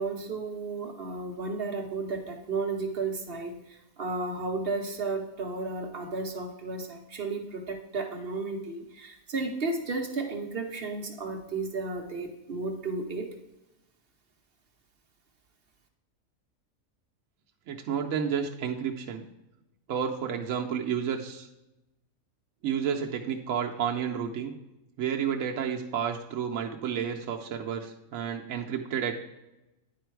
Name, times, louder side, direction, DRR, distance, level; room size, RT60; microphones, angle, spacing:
voice 1, 0.0-13.3, right 3 dB, 50° right, 3 dB, 1.0 m, -33 dB
voice 2, 17.7-19.2 19.9-21.5 22.6-24.5 25.0-29.2, right 7 dB, 75° right, 1 dB, 1.0 m, -31 dB
9.7 x 4.4 x 4.6 m, 0.96 s
omnidirectional pair, 1.5 m